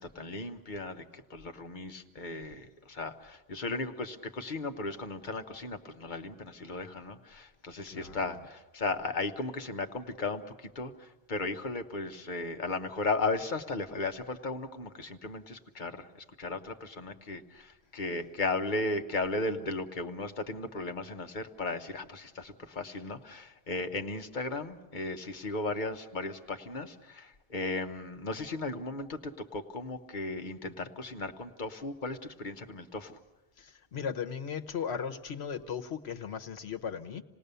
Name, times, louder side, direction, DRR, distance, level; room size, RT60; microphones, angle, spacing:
voice 1, 0.0-16.1 16.4-33.2, left 3 dB, 50° left, 6 dB, 1.2 m, -36 dB
voice 2, 33.6-37.2, left 7 dB, 85° left, 6 dB, 1.3 m, -37 dB
27.5 x 18.5 x 6.8 m, 1.1 s
omnidirectional pair, 1.1 m